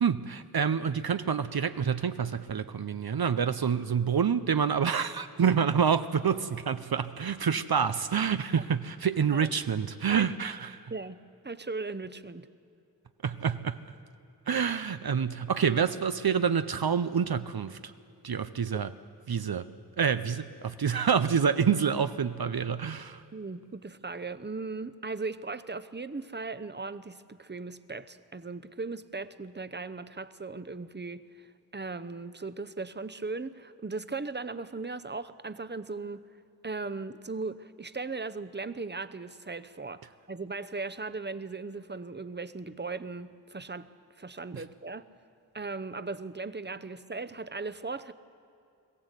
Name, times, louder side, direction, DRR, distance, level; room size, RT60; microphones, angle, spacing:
voice 1, 0.0-10.9 13.2-13.8 14.5-17.8 18.2-18.9 19.3-19.7 20.0-23.2 44.5-44.6, right 7 dB, 70° right, 11 dB, 0.6 m, -27 dB
voice 2, 11.4-12.5 23.3-36.2 36.6-43.9 44.2-45.0 45.5-48.1, right 3 dB, 30° right, 14 dB, 0.7 m, -38 dB
21.5 x 16.0 x 8.2 m, 2.6 s
wide cardioid pair, 45°, 38 cm